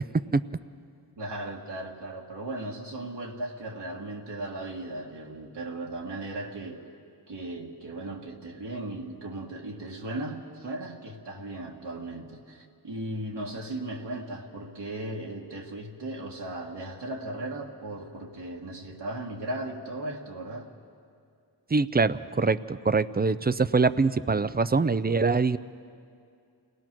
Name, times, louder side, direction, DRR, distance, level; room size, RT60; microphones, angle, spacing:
voice 1, 1.2-6.9 7.3-20.7, right 1 dB, 75° right, -1 dB, 1.8 m, -37 dB
voice 2, 21.7-25.6, right 4 dB, 25° right, 14 dB, 0.4 m, -24 dB
29.0 x 18.5 x 6.1 m, 2.4 s
wide cardioid pair, 105°, 42 cm